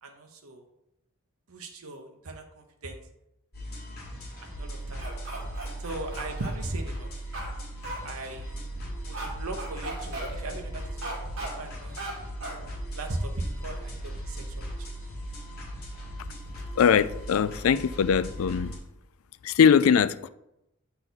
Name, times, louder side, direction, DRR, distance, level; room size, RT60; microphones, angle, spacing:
voice 1, 0.0-0.6 1.5-3.0 4.4-5.0 5.8-7.1 8.0-8.5 9.1-11.2 11.6-12.3 12.9-14.9, right 2 dB, 80° right, 0.9 m, -38 dB
sound 1, 3.5-18.8, right 1 dB, 45° left, 2.3 m, -38 dB
sound 2, 5.0-6.5 7.3-7.5 7.8-8.0 9.1-9.3 9.6-10.3 11.0-11.5 12.0-12.1 12.4-12.6, right 2 dB, 65° right, 2.0 m, -36 dB
voice 2, 16.8-18.7 19.4-20.3, left 7 dB, 75° left, 0.3 m, -21 dB
8.1 x 4.2 x 4.0 m
head